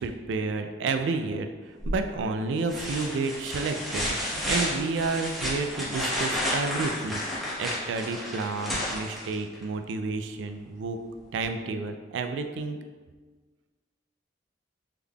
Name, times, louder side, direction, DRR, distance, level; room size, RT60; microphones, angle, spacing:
voice 1, 0.0-1.5 1.9-7.2 7.6-11.0 11.3-12.8, right 4 dB, 75° right, 7 dB, 0.3 m, -30 dB
sound 1, 1.8-2.2 2.7-9.6 11.4-11.5, left 1 dB, ahead, 0.8 m, -31 dB
3.5 x 3.4 x 2.2 m, 1.4 s
head